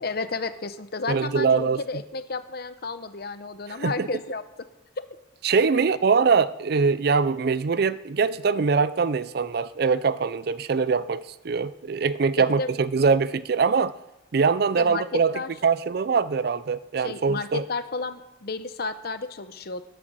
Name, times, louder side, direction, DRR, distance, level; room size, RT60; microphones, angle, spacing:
voice 1, 0.0-4.4 5.7-5.8 12.4-12.7 14.8-15.5 17.0-19.8, left 4 dB, 55° left, 0.8 m, -32 dB
voice 2, 1.1-1.8 3.8-4.1 5.4-13.9 14.3-15.3 15.6-17.6, right 5 dB, 55° right, 0.4 m, -23 dB
13.5 x 7.6 x 6.2 m
head